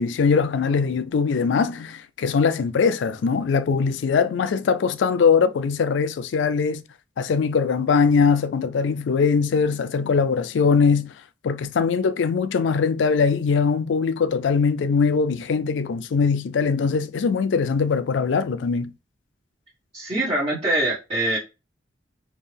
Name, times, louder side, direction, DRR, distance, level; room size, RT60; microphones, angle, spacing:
voice 1, 0.0-6.8 7.2-11.1 11.4-18.9, left 5 dB, 75° left, 0.4 m, -21 dB
voice 2, 19.9-21.4, right 1 dB, 35° right, 1.5 m, -23 dB
4.3 x 2.7 x 3.3 m
head